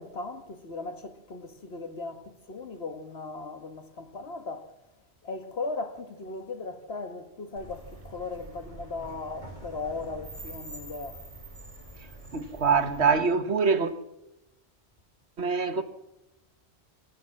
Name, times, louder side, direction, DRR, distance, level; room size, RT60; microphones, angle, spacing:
voice 1, 0.0-4.7 5.2-11.2, left 3 dB, 70° left, 1.7 m, -37 dB
sound 1, 7.6-13.2, right 1 dB, 30° right, 5.1 m, -45 dB
voice 2, 12.3-13.9 15.4-15.8, right 5 dB, 75° right, 1.5 m, -24 dB
25.0 x 14.5 x 7.5 m
omnidirectional pair, 1.1 m